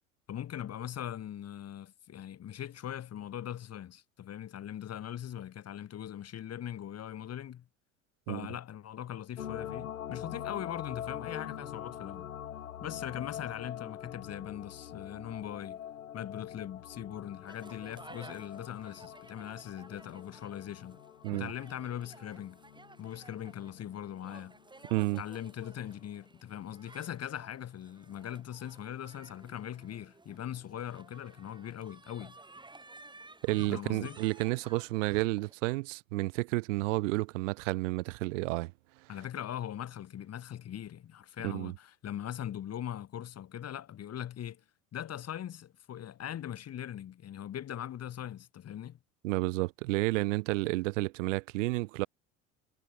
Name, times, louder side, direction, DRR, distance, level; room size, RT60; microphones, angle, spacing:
voice 1, 0.3-7.6 8.3-12.3 12.8-15.8 16.1-21.0 21.3-22.6 23.0-24.6 25.2-32.4 33.7-34.2 39.1-44.6 44.9-49.0, left 10 dB, 40° left, 2.5 m, -41 dB
sound 1, 9.4-25.1 25.5-25.6, left 10 dB, 85° left, 0.8 m, -44 dB
sound 2, 17.5-35.5, right 2 dB, 10° right, 3.5 m, -55 dB
voice 2, 24.9-25.2 33.4-38.7 41.4-41.7 49.2-52.1, right 23 dB, 65° right, 0.6 m, -31 dB
figure-of-eight pair, 70°, 40 cm